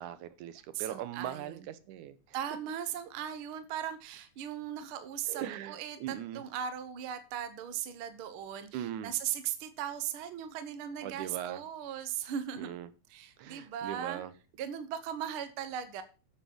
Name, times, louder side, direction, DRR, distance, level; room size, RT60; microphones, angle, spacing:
voice 1, 0.0-2.2 5.3-6.4 8.7-9.1 11.0-11.6 12.6-12.9 13.4-14.3, right 11 dB, 80° right, 2.3 m, -40 dB
voice 2, 0.7-1.7 2.3-12.7 13.1-14.2 14.6-16.0, right 9 dB, 60° right, 1.6 m, -38 dB
9.1 x 7.1 x 6.1 m
omnidirectional pair, 3.5 m